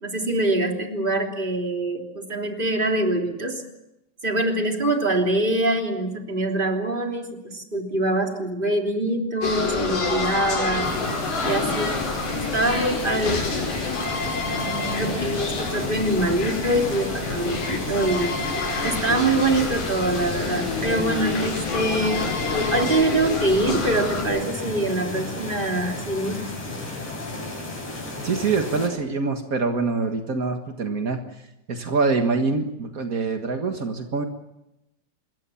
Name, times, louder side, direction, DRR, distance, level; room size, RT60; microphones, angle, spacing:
voice 1, 0.0-3.6 4.2-10.9 11.4-11.9 12.3-13.4 15.1-18.4 18.8-22.2 22.7-26.5, right 1 dB, 15° right, 2 dB, 2.9 m, -24 dB
sound 1, 9.4-24.2, left 3 dB, 80° left, 6.9 m, -28 dB
sound 2, 10.8-28.9, left 2 dB, 55° left, 9.2 m, -33 dB
voice 2, 28.2-31.2 31.7-34.2, right 4 dB, 60° right, 4 dB, 0.8 m, -25 dB
26.5 x 22.5 x 7.1 m, 0.91 s
omnidirectional pair, 4.2 m